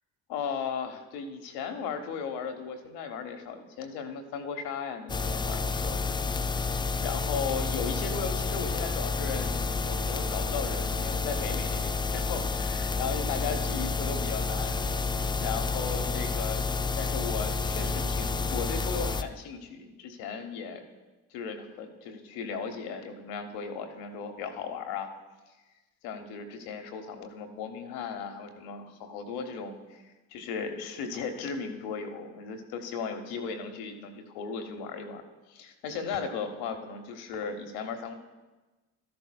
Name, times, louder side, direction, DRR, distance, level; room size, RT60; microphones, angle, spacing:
voice 1, 0.3-6.3 7.0-14.9 15.4-20.8 21.3-25.1 26.0-30.0 30.3-35.2 35.5-38.1, left 5 dB, 75° left, 5 dB, 1.0 m, -36 dB
sound 1, 5.1-19.2, left 4 dB, 10° left, 0.3 m, -30 dB
13.0 x 11.0 x 2.3 m, 1.2 s
hypercardioid pair, 45°, 39 cm